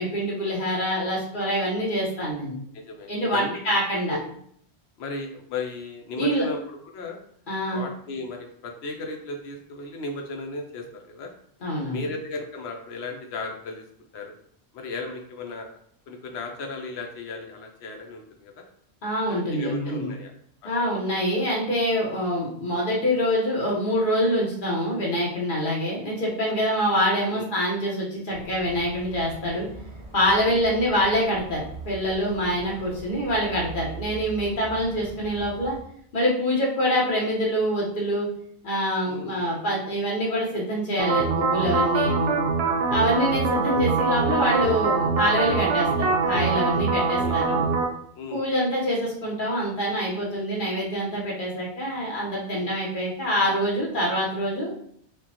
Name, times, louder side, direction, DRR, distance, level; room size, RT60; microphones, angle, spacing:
voice 1, 0.0-2.5 3.1-4.2 6.2-6.4 7.5-7.9 11.6-12.0 19.0-20.1 20.6-29.7 30.1-35.7 36.1-38.3 38.6-42.4 42.9-47.6 48.3-54.7, equal, 50° left, -4 dB, 1.2 m, -25 dB
voice 2, 2.7-3.6 4.1-4.2 5.0-7.2 7.7-11.3 11.9-13.8 14.1-14.3 14.7-15.7 16.1-18.6 19.3-20.3 20.6-20.9 26.6-26.9 27.3-27.5 30.4-30.6 32.4-32.9 39.0-39.6 41.9-42.6 46.9-47.7 48.1-48.5 52.5-52.8, left 3 dB, 80° left, 2 dB, 0.9 m, -36 dB
sound 1, 28.3-35.8, right 4 dB, 50° right, 0.4 m, -41 dB
sound 2, 41.0-47.8, right 4 dB, 70° right, 0.8 m, -23 dB
5.0 x 2.2 x 2.9 m, 0.65 s
omnidirectional pair, 1.1 m